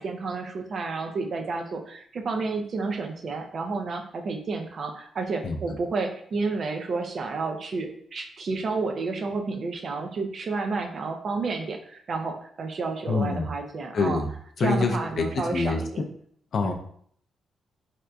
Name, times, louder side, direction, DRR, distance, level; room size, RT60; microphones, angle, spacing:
voice 1, 0.0-14.2 14.6-15.9 16.6-16.7, right 4 dB, 45° right, 4 dB, 0.4 m, -30 dB
voice 2, 13.1-13.5 13.9-14.3 14.6-16.0 16.5-16.7, left 4 dB, 50° left, 3 dB, 0.4 m, -26 dB
4.2 x 2.5 x 2.2 m, 0.62 s
wide cardioid pair, 155°, 0 cm